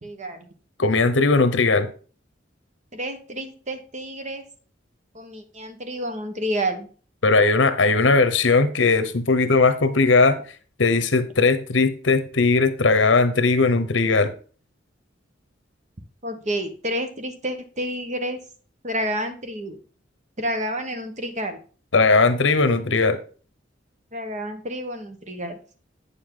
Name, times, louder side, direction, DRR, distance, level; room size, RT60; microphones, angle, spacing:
voice 1, 0.0-0.5 2.9-4.4 5.1-6.9 16.2-18.4 18.8-19.8 20.4-21.6 24.1-25.6, equal, 40° right, 7 dB, 1.2 m, -29 dB
voice 2, 0.8-1.9 7.2-10.4 10.8-14.3 21.9-23.2, left 3 dB, 75° left, 10 dB, 1.0 m, -18 dB
8.6 x 6.9 x 3.8 m, 0.40 s
head